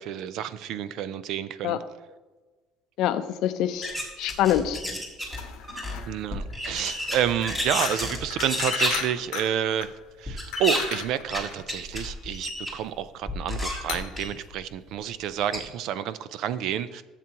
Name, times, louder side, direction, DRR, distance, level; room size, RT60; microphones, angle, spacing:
voice 1, 0.0-1.8 6.1-9.9 10.2-17.0, right 10 dB, 55° right, 14 dB, 0.4 m, -29 dB
voice 2, 3.0-4.8, left 11 dB, 60° left, 11 dB, 0.6 m, -25 dB
sound 1, 3.8-5.4 5.6-8.9 10.2-10.8 11.3-11.4 11.7-12.7 13.3-14.5 15.2-15.3 15.5-15.6, left 1 dB, 10° right, 1.8 m, -30 dB
sound 2, 5.3-15.3, left 10 dB, 80° left, 0.9 m, -37 dB
14.0 x 7.5 x 2.9 m, 1.2 s
cardioid pair, 175°, 0 cm